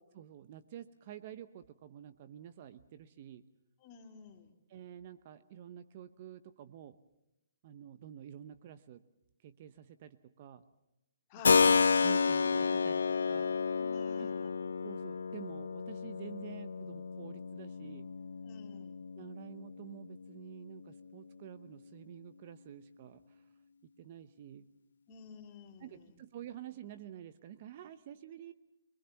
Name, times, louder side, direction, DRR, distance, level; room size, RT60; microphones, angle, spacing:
voice 1, 0.1-3.4 4.7-7.0 7.6-9.0 9.4-10.6 12.0-13.6 14.2-14.5 14.8-18.1 19.2-23.4 24.0-24.7 25.8-28.5, right 10 dB, 35° right, 12 dB, 0.9 m, -49 dB
voice 2, 3.8-4.5 11.3-11.8 13.8-14.6 18.4-19.0 25.1-26.1, left 7 dB, 25° left, 4 dB, 2.6 m, -51 dB
Keyboard (musical), 11.4-20.0, left 5 dB, 85° left, 0.8 m, -31 dB
26.0 x 21.5 x 7.2 m, 0.87 s
hypercardioid pair, 165°, 0 cm